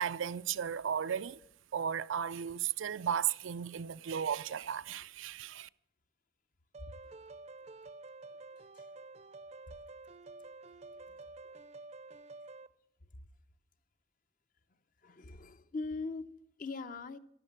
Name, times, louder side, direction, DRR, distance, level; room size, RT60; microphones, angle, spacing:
voice 1, 0.0-1.4 1.7-5.7, right 8 dB, 85° right, 0.4 m, -35 dB
sound 1, 6.7-12.7, right 3 dB, 35° right, 0.5 m, -50 dB
voice 2, 15.0-17.2, left 3 dB, 45° left, 0.7 m, -41 dB
13.0 x 12.0 x 7.3 m
head